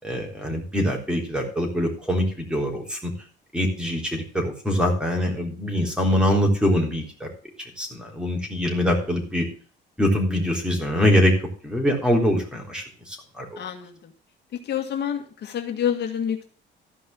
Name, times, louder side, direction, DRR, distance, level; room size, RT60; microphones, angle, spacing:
voice 1, 0.0-3.1 3.5-7.3 7.8-9.5 10.0-11.3 11.6-13.5, equal, 5° right, 1 dB, 3.7 m, -23 dB
voice 2, 13.6-14.1 14.5-16.4, left 9 dB, 60° left, 5 dB, 1.8 m, -28 dB
13.5 x 5.4 x 7.1 m, 0.40 s
cardioid pair, 115°, 20 cm